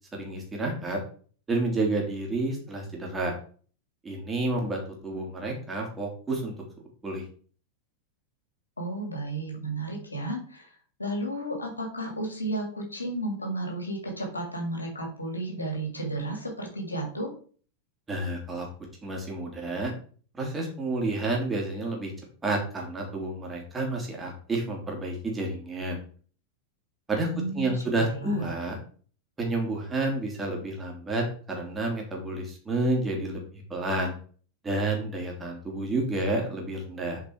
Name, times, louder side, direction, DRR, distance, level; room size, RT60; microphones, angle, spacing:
voice 1, 0.1-1.0 1.5-3.3 4.0-6.5 7.0-7.2 18.1-18.7 19.0-19.9 20.4-22.1 22.4-26.0 27.1-28.8 29.4-33.4 33.7-34.1 34.6-37.2, right 2 dB, 15° right, -1 dB, 3.1 m, -30 dB
voice 2, 8.8-10.7 11.0-17.3 27.3-28.5, right 1 dB, 80° left, 0 dB, 2.8 m, -33 dB
7.5 x 5.3 x 4.7 m, 0.43 s
figure-of-eight pair, 90°, 0 cm